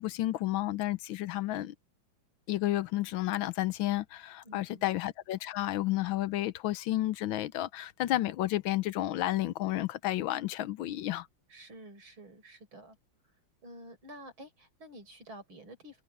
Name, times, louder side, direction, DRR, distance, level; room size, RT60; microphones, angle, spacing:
voice 1, 0.0-1.7 2.5-11.3, left 15 dB, 80° left, 1.5 m, -31 dB
voice 2, 4.4-4.9 11.5-13.0 13.6-16.0, right 1 dB, 80° right, 6.7 m, -50 dB
omnidirectional pair, 2.2 m